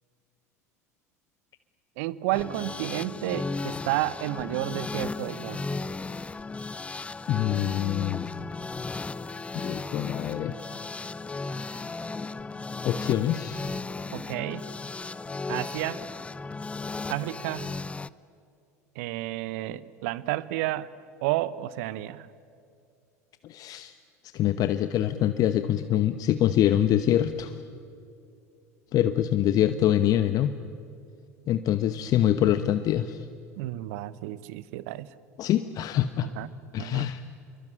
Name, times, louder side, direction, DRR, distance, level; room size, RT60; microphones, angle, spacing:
voice 1, 2.0-5.6 14.1-14.6 15.5-16.0 17.1-17.7 18.9-20.9 21.2-22.3 33.6-35.1 36.2-36.5 36.8-37.1, right 16 dB, 65° right, 18 dB, 1.0 m, -31 dB
sound 1, 2.3-18.1, left 3 dB, 15° left, 0.6 m, -35 dB
voice 2, 7.3-8.3 9.5-10.5 12.8-13.7 23.4-23.9 24.3-27.6 28.9-30.5 31.5-33.2 35.4-36.3 36.7-37.2, left 11 dB, 45° left, 11 dB, 1.0 m, -25 dB
27.0 x 23.0 x 9.0 m, 2.5 s
hypercardioid pair, 75°, 9 cm